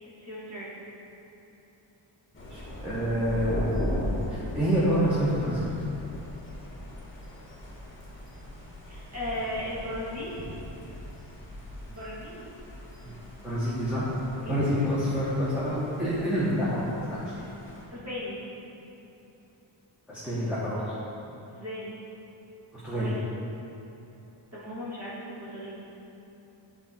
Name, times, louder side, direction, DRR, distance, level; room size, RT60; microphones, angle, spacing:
voice 1, 0.2-0.7 8.9-10.4 11.9-12.5 14.4-14.7 17.9-18.4 21.4-21.9 22.9-23.2 24.5-25.7, left 1 dB, 35° right, -8 dB, 1.8 m, -36 dB
Thunder, 2.3-17.8, left 1 dB, 25° left, 1.5 m, -38 dB
voice 2, 2.4-3.7 4.3-5.7 13.0-13.1 13.4-14.1 14.5-17.3 20.1-20.9 22.7-23.0, equal, 5° right, -11 dB, 1.3 m, -27 dB
9.9 x 4.4 x 4.4 m, 2.9 s
wide cardioid pair, 140°, 46 cm